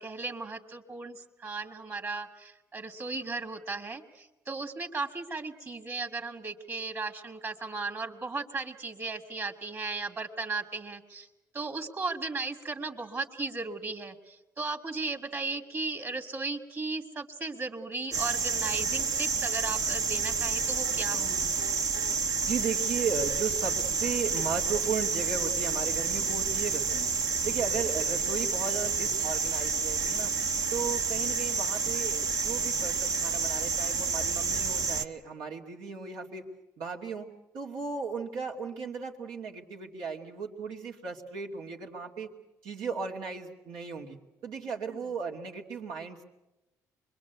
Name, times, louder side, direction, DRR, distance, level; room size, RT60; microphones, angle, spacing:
voice 1, 0.0-11.3 11.5-21.5 44.9-45.1, right 3 dB, 40° right, 5 dB, 2.4 m, -36 dB
sound 1, 18.1-35.1, right 5 dB, 55° right, 1.1 m, -29 dB
voice 2, 22.5-27.1 27.4-30.3 30.7-36.5 36.8-37.3 37.5-42.3 42.6-44.2 44.4-46.2, right 5 dB, 85° right, 0 dB, 2.7 m, -36 dB
25.5 x 22.0 x 8.2 m, 0.99 s
supercardioid pair, 70°, 7 cm